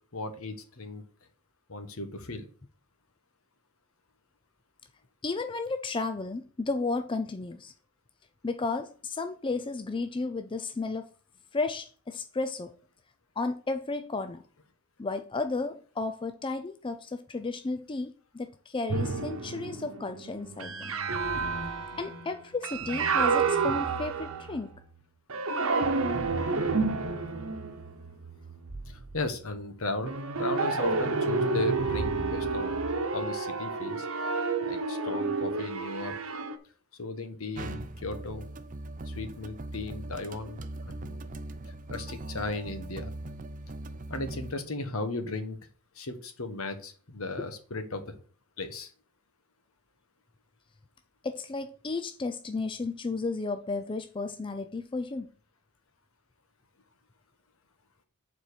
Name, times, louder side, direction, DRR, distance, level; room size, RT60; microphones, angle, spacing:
voice 1, 0.1-1.0 1.7-2.4 28.9-30.1 30.4-32.8 33.1-34.1 34.6-36.1 36.9-38.4 39.1-41.3 41.7-43.1 44.1-45.6 45.9-48.2 48.6-48.9, left 2 dB, 70° left, 1.3 m, -36 dB
voice 2, 5.2-7.7 8.4-11.1 11.5-12.7 13.4-14.4 15.0-20.9 22.0-24.7 40.9-41.1 51.2-55.3, left 3 dB, 25° left, 0.4 m, -33 dB
sound 1, 18.9-24.8 25.3-29.2 30.0-36.6, right 4 dB, 65° right, 1.0 m, -30 dB
sound 2, 37.5-44.5, right 2 dB, 35° right, 0.7 m, -40 dB
7.2 x 4.4 x 6.6 m
head